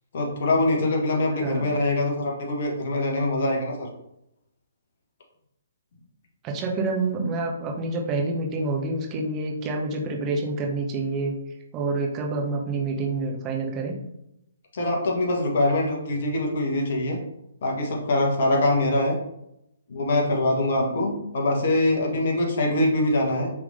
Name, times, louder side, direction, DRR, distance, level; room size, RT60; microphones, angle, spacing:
voice 1, 0.1-3.9 14.7-17.2 17.6-19.2 19.9-23.5, left 1 dB, 45° left, 0 dB, 0.9 m, -23 dB
voice 2, 1.4-1.8 6.4-11.4 11.7-13.9, right 3 dB, 20° right, 0 dB, 0.6 m, -27 dB
3.4 x 3.0 x 2.5 m, 0.81 s
figure-of-eight pair, 130°, 0 cm